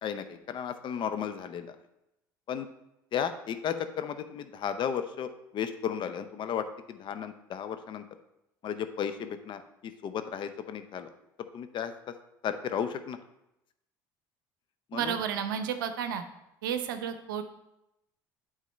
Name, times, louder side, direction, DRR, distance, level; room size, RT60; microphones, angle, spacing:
voice 1, 0.0-1.7 2.5-2.7 3.1-8.0 8.6-11.1 11.5-11.9 12.4-13.2 14.9-15.2, left 8 dB, 50° left, 9 dB, 0.7 m, -34 dB
voice 2, 14.9-16.2 16.6-17.4, right 8 dB, 85° right, 9 dB, 0.6 m, -32 dB
8.3 x 3.7 x 5.4 m, 0.87 s
hypercardioid pair, 75°, 11 cm